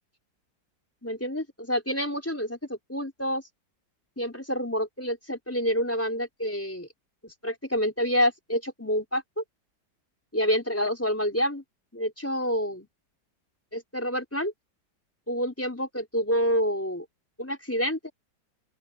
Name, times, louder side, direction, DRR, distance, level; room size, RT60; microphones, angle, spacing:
voice 1, 1.0-3.4 4.2-6.9 7.2-9.4 10.3-11.6 11.9-12.9 13.7-14.5 15.3-17.0 17.4-18.1, equal, 5° left, 4.5 m, -28 dB
open air
omnidirectional pair, 2.0 m